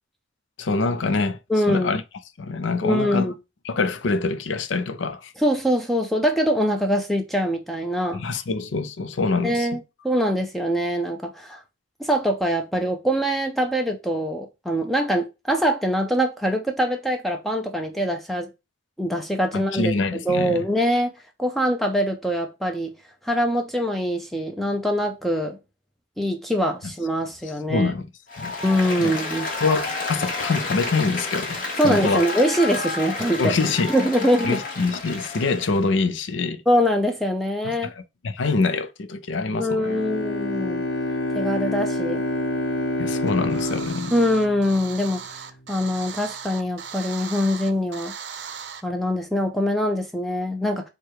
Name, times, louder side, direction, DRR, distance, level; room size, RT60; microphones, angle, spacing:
voice 1, 0.6-1.4 1.7-2.0 2.4-3.3 3.6-5.3 8.1-9.7 19.5-20.6 27.7-28.1 28.4-28.5 29.0-29.1 29.6-32.2 33.4-33.9 34.4-36.6 37.8-37.9 38.2-39.8 43.0-44.1, left 3 dB, 90° left, 0.6 m, -25 dB
voice 2, 1.5-2.0 2.8-3.3 5.4-8.2 9.4-11.6 12.0-18.5 19.0-21.1 21.4-23.0 23.2-25.6 26.2-27.9 28.6-29.5 31.8-33.6 33.9-34.6 36.7-37.9 39.6-40.8 41.3-42.3 44.1-45.4 45.7-48.1 48.8-50.9, equal, ahead, 0.4 m, -23 dB
Applause, 28.3-35.8, left 3 dB, 45° left, 1.2 m, -30 dB
Bowed string instrument, 39.8-45.3, left 1 dB, 70° left, 1.0 m, -28 dB
sound 1, 43.3-48.8, right 7 dB, 70° right, 0.5 m, -38 dB
4.7 x 2.3 x 4.6 m
head